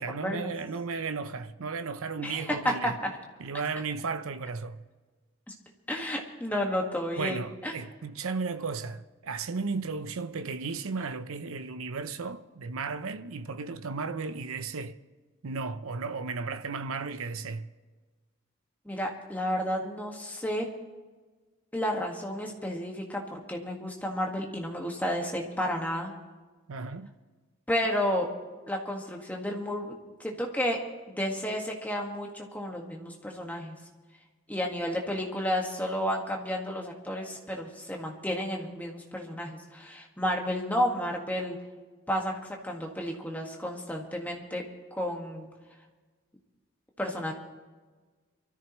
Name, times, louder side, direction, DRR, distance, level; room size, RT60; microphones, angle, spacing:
voice 1, 0.0-3.0 3.4-4.8 7.2-15.0 15.4-17.7 26.7-27.1, right 4 dB, 80° right, 0.6 m, -34 dB
voice 2, 2.2-3.1 5.5-5.6 5.9-7.7 18.8-20.7 21.7-26.1 27.7-28.3 28.7-29.9 30.2-30.8 31.2-33.7 34.5-41.6 42.1-44.6 44.9-45.5 47.0-47.3, equal, 10° left, 1.6 m, -31 dB
24.5 x 14.0 x 3.1 m
head